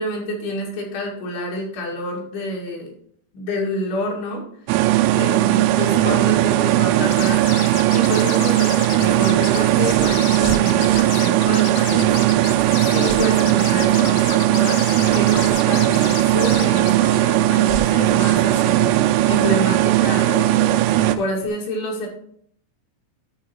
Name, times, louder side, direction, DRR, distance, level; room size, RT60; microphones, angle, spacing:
voice 1, 0.0-2.9 3.3-4.4 5.1-7.4 7.9-12.2 12.8-14.8 15.1-18.9 19.2-20.9 21.2-22.1, left 1 dB, 70° left, -2 dB, 4.4 m, -28 dB
sound 1, 4.7-21.2, right 14 dB, 90° right, 3.2 m, -18 dB
sound 2, 7.1-17.0, left 9 dB, 85° left, 3.5 m, -32 dB
sound 3, 8.4-20.1 21.4-21.5, right 5 dB, 70° right, 1.5 m, -37 dB
12.5 x 4.7 x 4.5 m, 0.65 s
omnidirectional pair, 5.7 m